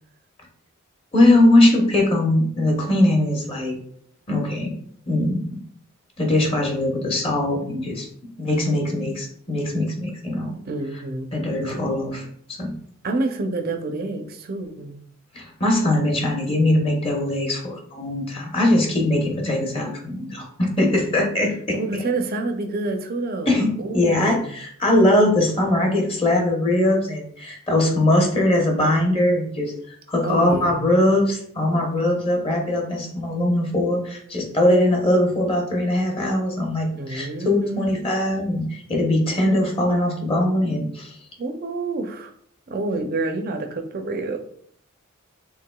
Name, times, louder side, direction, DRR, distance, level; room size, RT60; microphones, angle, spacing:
voice 1, 1.1-3.8 4.3-4.7 5.1-5.5 6.2-8.1 8.4-10.5 11.3-12.2 12.6-12.7 15.3-21.8 23.5-23.7 23.9-41.2, left 1 dB, 25° left, 0 dB, 0.8 m, -21 dB
voice 2, 10.6-11.3 11.7-11.8 13.0-14.9 21.7-24.5 30.2-31.0 36.9-38.1 41.4-42.3 42.7-44.4, right 2 dB, 45° right, 5 dB, 0.5 m, -28 dB
4.7 x 3.5 x 2.3 m, 0.63 s
head